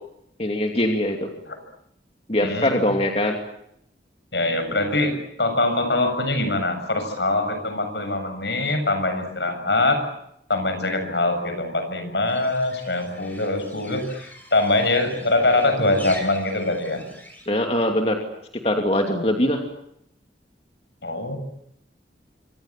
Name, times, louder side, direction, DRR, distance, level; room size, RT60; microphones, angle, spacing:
voice 1, 0.4-1.3 2.3-3.4 17.5-18.2 18.6-19.6, left 1 dB, 35° left, 3 dB, 2.7 m, -22 dB
voice 2, 2.4-2.9 4.3-10.0 10.5-17.0 21.0-21.4, left 2 dB, 75° left, 7 dB, 7.6 m, -23 dB
sound 1, 12.2-17.5, left 1 dB, 10° left, 7.2 m, -43 dB
27.5 x 25.5 x 7.6 m, 0.76 s
head